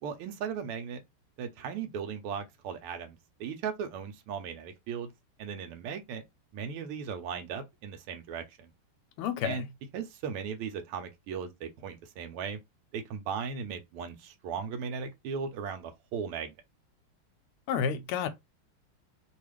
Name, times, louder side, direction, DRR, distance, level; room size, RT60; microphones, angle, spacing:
voice 1, 0.0-1.0 1.4-5.1 5.4-6.2 6.5-8.7 9.4-9.6 9.9-12.6 12.9-16.5, right 6 dB, 90° right, 1.5 m, -37 dB
voice 2, 9.2-9.6 17.7-18.3, left 7 dB, 90° left, 1.5 m, -30 dB
3.6 x 2.3 x 3.2 m
omnidirectional pair, 2.4 m